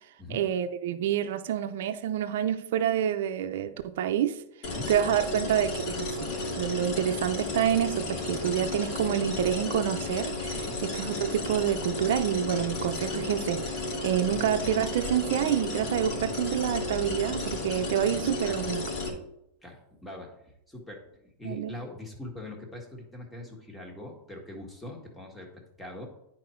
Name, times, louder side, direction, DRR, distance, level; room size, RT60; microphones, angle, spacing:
voice 1, 0.3-4.4 4.9-18.9 21.4-21.8, right 10 dB, 75° right, 0.5 m, -28 dB
sound 1, 4.6-19.1, left 2 dB, 50° left, 2.3 m, -33 dB
voice 2, 19.6-20.4 20.7-21.1 21.4-26.1, left 1 dB, 5° left, 1.7 m, -42 dB
9.5 x 4.4 x 4.5 m
supercardioid pair, 135°, 0 cm